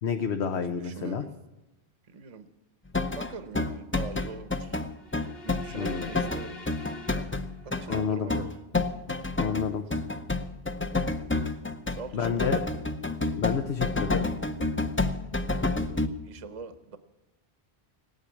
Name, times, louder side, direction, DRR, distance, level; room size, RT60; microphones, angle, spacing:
voice 1, 0.0-1.2 5.7-6.1 7.9-8.3 9.4-9.9 12.1-12.6 13.4-14.2, left 6 dB, 80° left, 6 dB, 1.1 m, -29 dB
voice 2, 0.8-1.3 2.1-2.5 3.1-4.8 5.4-6.8 7.6-8.5 11.9-12.6 15.6-17.0, right 4 dB, 35° right, 11 dB, 0.9 m, -42 dB
sound 1, 2.9-16.1, left 3 dB, 15° left, 0.5 m, -29 dB
sound 2, 4.9-8.0, left 1 dB, 45° left, 1.7 m, -44 dB
17.5 x 9.3 x 8.4 m, 1.0 s
omnidirectional pair, 1.1 m